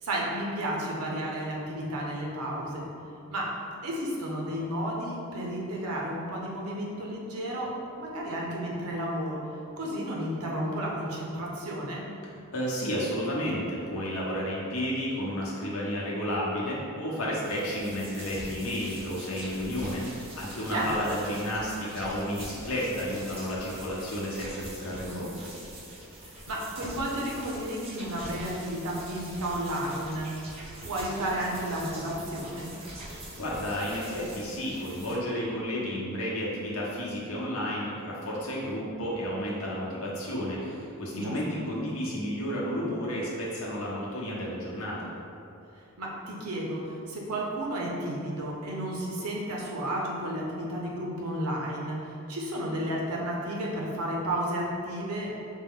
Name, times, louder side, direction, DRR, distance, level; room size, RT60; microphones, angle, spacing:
voice 1, 0.0-2.9 3.3-3.5 3.8-7.7 8.0-9.4 9.8-12.0 20.7-20.9 25.1-25.3 26.2-30.3 30.8-32.7 41.1-41.4 46.0-55.3, right 1 dB, 90° right, -3 dB, 0.8 m, -32 dB
voice 2, 12.5-25.3 33.4-45.1, equal, 70° left, -5 dB, 0.9 m, -32 dB
sound 1, 17.4-35.2, right 1 dB, 25° right, 0.8 m, -44 dB
5.2 x 2.2 x 3.6 m, 2.6 s
head